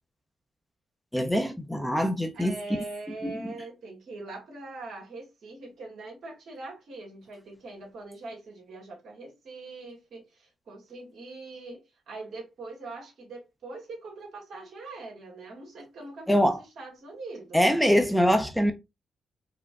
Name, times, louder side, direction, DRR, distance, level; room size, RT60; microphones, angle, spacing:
voice 1, 1.1-2.5 3.2-3.5 16.3-16.6 17.5-18.7, equal, 5° left, 0.7 m, -23 dB
voice 2, 2.3-17.6, right 3 dB, 70° right, 1.6 m, -42 dB
4.6 x 2.1 x 2.4 m
supercardioid pair, 55°, 0 cm